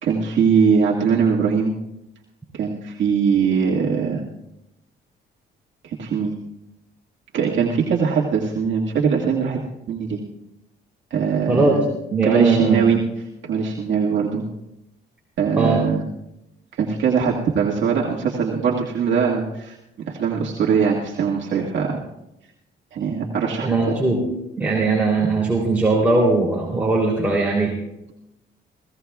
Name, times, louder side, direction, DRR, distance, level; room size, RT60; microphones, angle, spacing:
voice 1, 0.0-1.7 2.5-4.2 5.8-6.3 7.3-9.6 9.9-10.2 11.1-11.8 12.2-13.0 13.4-14.4 15.4-16.0 16.8-19.8 20.0-22.0 22.9-23.9, right 6 dB, 70° right, -3 dB, 1.8 m, -21 dB
voice 2, 11.5-11.8 12.1-12.8 15.6-15.8 23.6-24.2 24.6-27.7, right 3 dB, 5° right, -5 dB, 3.2 m, -19 dB
24.5 x 16.5 x 2.4 m, 0.86 s
cardioid pair, 90°, 20 cm